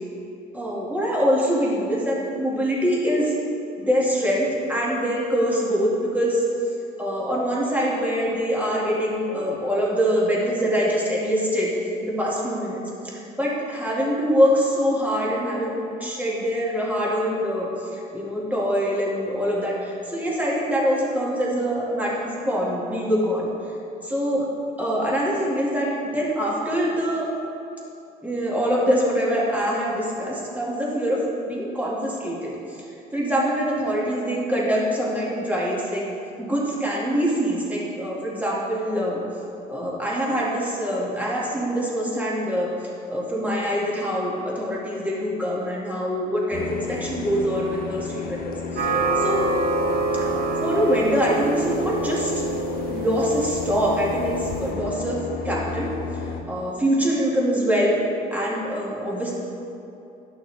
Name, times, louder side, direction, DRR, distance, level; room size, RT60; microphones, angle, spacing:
voice 1, 0.5-3.3 3.8-6.4 7.0-11.7 12.0-23.5 24.0-24.5 24.8-27.3 28.2-32.8 33.1-36.0 36.4-39.2 39.7-42.7 43.1-48.9 49.2-49.4 50.6-52.3 52.9-55.9 56.5-58.0 58.3-59.3, equal, 10° right, -5 dB, 2.1 m, -24 dB
sound 1, 46.5-56.4, left 5 dB, 60° left, 0.7 m, -32 dB
sound 2, 48.8-54.7, right 3 dB, 70° right, 1.4 m, -26 dB
11.5 x 6.3 x 3.5 m, 2.8 s
cardioid pair, 110°, 17 cm